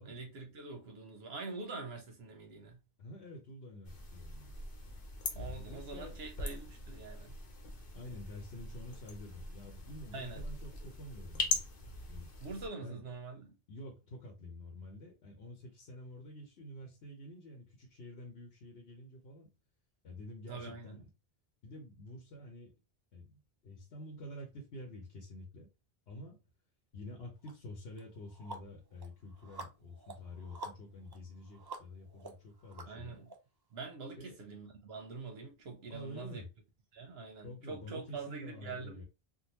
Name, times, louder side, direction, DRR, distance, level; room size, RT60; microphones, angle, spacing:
voice 1, 0.0-2.8 5.3-7.4 10.1-10.4 12.4-13.5 20.5-21.0 32.9-33.3 33.7-36.4 36.9-39.0, right 4 dB, 75° right, 1.0 m, -45 dB
voice 2, 3.0-4.6 5.4-6.2 7.9-11.6 12.1-12.3 12.8-13.0 13.7-19.5 20.0-21.1 21.6-22.7 23.1-25.7 26.1-26.4 26.9-33.2 34.2-34.4 35.9-36.5 37.4-39.0, left 1 dB, 85° left, 1.1 m, -48 dB
sound 1, 3.8-12.7, left 3 dB, 60° left, 1.0 m, -41 dB
sound 2, 27.4-27.5 28.0-33.4, right 2 dB, 30° right, 0.5 m, -49 dB
3.7 x 2.2 x 2.9 m
omnidirectional pair, 1.0 m